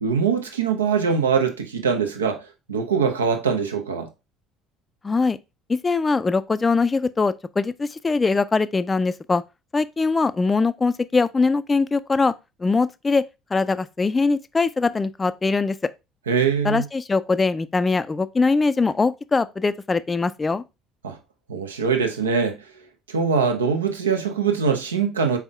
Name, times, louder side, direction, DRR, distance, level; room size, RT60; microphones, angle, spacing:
voice 1, 0.0-4.1 16.3-16.8 21.0-21.2 21.5-22.6 23.1-25.4, right 6 dB, 85° right, 0.6 m, -22 dB
voice 2, 5.0-5.4 5.7-9.4 9.7-12.3 12.6-13.2 13.5-15.8 16.6-20.6, left 4 dB, 25° left, 0.3 m, -22 dB
4.3 x 3.5 x 3.4 m
figure-of-eight pair, 60°, 0 cm